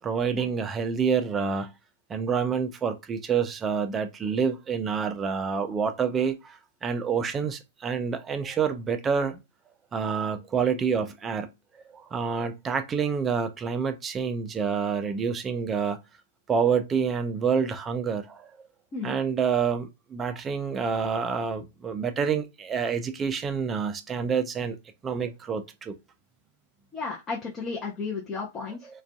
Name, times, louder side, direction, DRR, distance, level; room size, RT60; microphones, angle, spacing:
voice 1, 0.0-1.7 2.1-9.4 9.9-11.5 11.9-16.0 16.5-18.5 19.0-24.8 25.0-26.0 28.8-29.0, right 6 dB, 25° right, 0.4 m, -27 dB
voice 2, 26.9-28.9, left 4 dB, 25° left, 0.6 m, -33 dB
2.5 x 2.3 x 2.2 m
hypercardioid pair, 110°, 0 cm